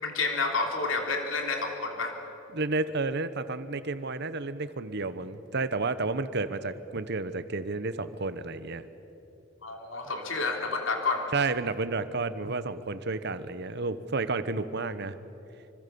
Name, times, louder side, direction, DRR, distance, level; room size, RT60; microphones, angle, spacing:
voice 1, 0.0-2.2 9.6-11.3, left 3 dB, 75° left, 3 dB, 3.1 m, -30 dB
voice 2, 2.5-8.8 11.3-15.1, right 3 dB, 60° right, 13 dB, 1.1 m, -31 dB
26.0 x 25.5 x 7.0 m, 2.9 s
head